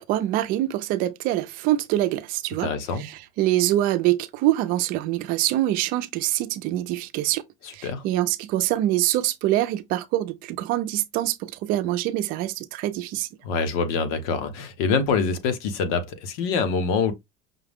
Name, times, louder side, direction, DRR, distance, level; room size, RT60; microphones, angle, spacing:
voice 1, 0.0-2.7 3.0-7.4 7.7-13.3, right 14 dB, 45° right, 0.6 m, -25 dB
voice 2, 2.6-3.1 7.6-8.0 13.4-17.1, left 5 dB, 70° left, 1.2 m, -25 dB
5.8 x 2.3 x 3.6 m
cardioid pair, 165°, 19 cm